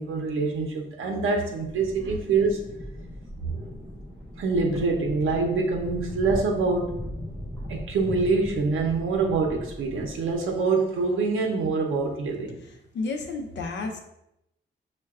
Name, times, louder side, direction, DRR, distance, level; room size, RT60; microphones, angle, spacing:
voice 1, 0.0-2.6 4.4-7.0 7.7-12.6, right 4 dB, 85° right, 1 dB, 0.5 m, -25 dB
sound 1, 1.4-10.6, left 1 dB, 5° right, 1.2 m, -38 dB
voice 2, 12.9-14.0, left 3 dB, 60° left, 4 dB, 0.6 m, -31 dB
6.3 x 2.2 x 2.3 m, 0.83 s
wide cardioid pair, 145°, 20 cm